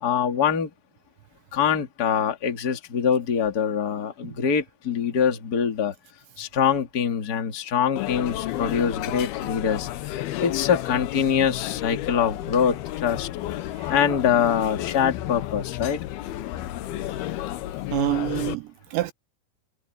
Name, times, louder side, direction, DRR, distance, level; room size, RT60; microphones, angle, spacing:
voice 1, 0.0-0.7 1.5-5.9 6.4-13.3 13.9-16.0, left 7 dB, 40° left, 1.4 m, -24 dB
sound 1, 8.0-18.5, left 14 dB, 80° left, 2.2 m, -32 dB
voice 2, 17.9-19.1, right 17 dB, 85° right, 2.6 m, -27 dB
omnidirectional pair, 5.8 m